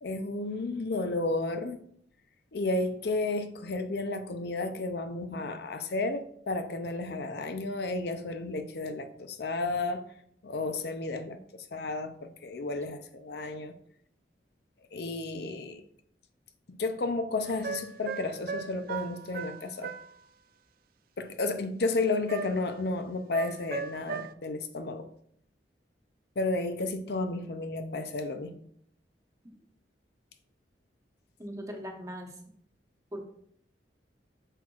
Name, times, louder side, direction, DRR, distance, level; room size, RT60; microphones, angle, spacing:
voice 1, 0.0-1.8 2.5-10.1 10.4-13.7 14.9-15.8 16.7-19.9 21.2-25.1 26.4-28.5, left 2 dB, 65° left, 0.6 m, -32 dB
sound 1, 17.4-20.1 22.3-22.8 23.3-24.3, right 6 dB, 55° right, 0.4 m, -38 dB
voice 2, 31.4-32.3 33.1-33.2, equal, 20° right, 1.1 m, -39 dB
7.8 x 6.2 x 2.4 m
head